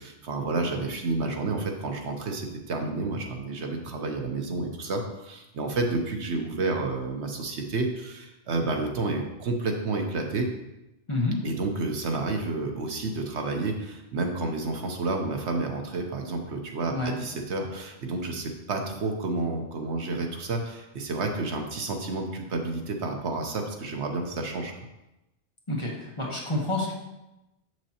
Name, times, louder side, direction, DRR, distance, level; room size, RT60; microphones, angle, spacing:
voice 1, 0.0-10.5 11.4-24.7, right 3 dB, 70° right, 3 dB, 1.1 m, -30 dB
voice 2, 11.1-11.4 16.9-17.1 25.7-26.9, left 2 dB, 25° left, -3 dB, 1.1 m, -28 dB
7.4 x 6.2 x 2.9 m, 0.95 s
omnidirectional pair, 1.2 m